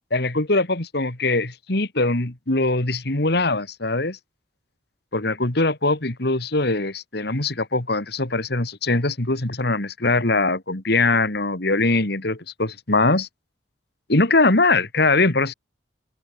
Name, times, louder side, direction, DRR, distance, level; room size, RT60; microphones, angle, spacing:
voice 1, 0.1-4.2 5.1-13.3 14.1-15.5, left 2 dB, 60° left, 2.5 m, -22 dB
open air
head